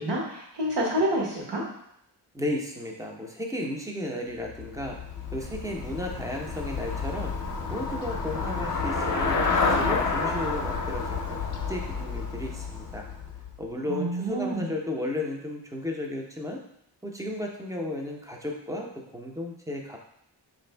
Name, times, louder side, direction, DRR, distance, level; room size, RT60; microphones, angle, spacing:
voice 1, 0.0-1.6 13.9-14.7, right 1 dB, 70° right, -2 dB, 1.2 m, -28 dB
voice 2, 2.3-5.0 5.3-7.3 7.7-11.4 11.7-13.1 13.6-16.6 17.0-20.0, left 1 dB, 10° right, 0 dB, 0.5 m, -34 dB
Traffic noise roadway noise / Bicycle, 4.4-13.6, left 4 dB, 45° left, 0.6 m, -29 dB
4.6 x 2.6 x 3.3 m, 0.74 s
wide cardioid pair, 130°, 44 cm